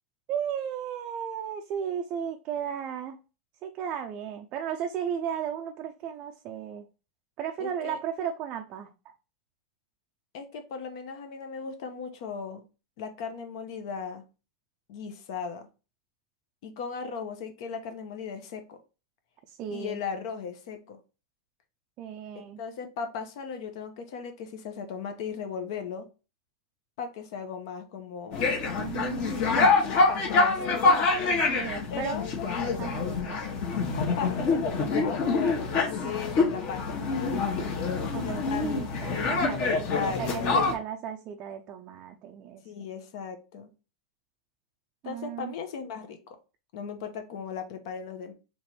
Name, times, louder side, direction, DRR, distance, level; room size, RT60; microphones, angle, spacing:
voice 1, 0.3-3.2 3.6-6.9 7.4-8.9 19.5-20.0 22.0-22.6 28.8-30.0 31.5-32.2 32.8-33.5 38.1-42.6 45.0-45.5, right 8 dB, 30° right, 4 dB, 0.4 m, -35 dB
voice 2, 7.6-8.0 10.3-12.6 13.0-14.2 14.9-15.7 16.6-18.8 19.7-21.0 22.3-26.1 27.0-28.5 29.8-30.8 31.9-32.3 33.9-37.5 38.2-38.7 39.6-40.6 42.6-43.7 45.0-46.4 46.7-48.3, left 6 dB, 55° left, 7 dB, 0.8 m, -37 dB
sound 1, 28.3-40.7, left 3 dB, 35° left, 1.1 m, -26 dB
3.3 x 3.0 x 4.3 m, 0.32 s
supercardioid pair, 155°, 3 cm